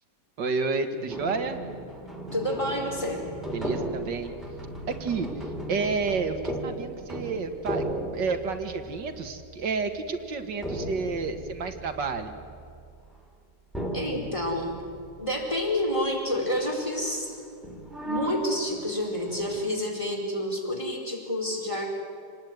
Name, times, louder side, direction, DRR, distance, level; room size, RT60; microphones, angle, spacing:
voice 1, 0.4-1.6 3.5-4.3 4.9-5.3 5.7-7.9 8.1-12.4, right 4 dB, 80° right, 7 dB, 2.4 m, -30 dB
sound 1, 1.1-13.2 13.7-15.6 15.9-16.0 16.3-19.7, right 1 dB, ahead, 3.6 m, -36 dB
voice 2, 2.3-3.2 13.9-14.8 15.2-17.4 18.0-21.9, left 1 dB, 15° left, 0 dB, 4.6 m, -29 dB
27.0 x 19.5 x 9.4 m, 2.3 s
omnidirectional pair, 1.9 m